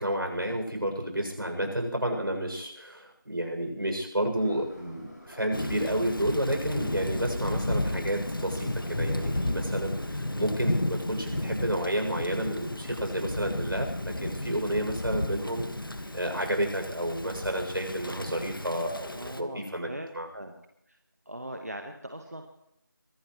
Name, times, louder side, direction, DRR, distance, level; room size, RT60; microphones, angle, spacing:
voice 1, 0.0-19.9 20.1-20.3, right 1 dB, 85° right, 3 dB, 7.4 m, -31 dB
Subway metro underground, 4.4-16.9, equal, 55° left, 6.4 m, -49 dB
Thunder / Rain, 5.5-19.4, left 1 dB, 75° left, 1.7 m, -33 dB
voice 2, 19.1-20.5 20.9-21.0 21.2-22.5, right 1 dB, 45° right, 4 dB, 1.4 m, -40 dB
23.5 x 17.5 x 3.2 m, 0.78 s
figure-of-eight pair, 180°, 11 cm